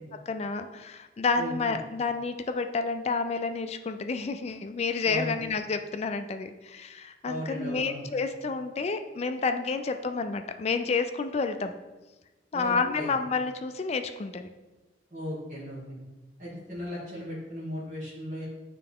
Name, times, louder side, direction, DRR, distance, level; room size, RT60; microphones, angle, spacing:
voice 1, 0.3-11.7 12.5-14.5, left 4 dB, 35° left, 8 dB, 0.3 m, -30 dB
voice 2, 1.4-1.8 5.1-5.4 7.2-8.0 12.5-13.1 15.1-16.0 16.4-18.5, equal, 40° right, -10 dB, 1.7 m, -36 dB
8.7 x 3.3 x 3.6 m, 1.1 s
head